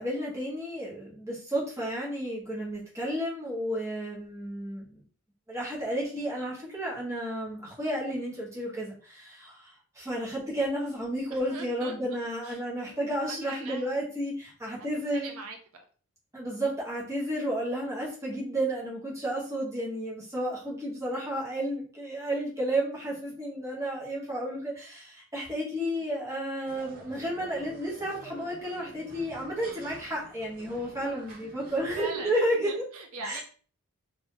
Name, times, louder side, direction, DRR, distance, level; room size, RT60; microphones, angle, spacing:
voice 1, 0.0-5.0 5.5-15.3 16.3-32.8 33.2-33.4, right 1 dB, 15° right, -4 dB, 1.0 m, -32 dB
voice 2, 11.3-13.0 13.3-13.9 15.1-15.8 31.4-32.3 32.6-33.4, right 3 dB, 70° right, 4 dB, 0.5 m, -42 dB
sound 1, 26.7-32.3, right 3 dB, 40° right, 0.9 m, -48 dB
2.7 x 2.6 x 3.6 m, 0.42 s
head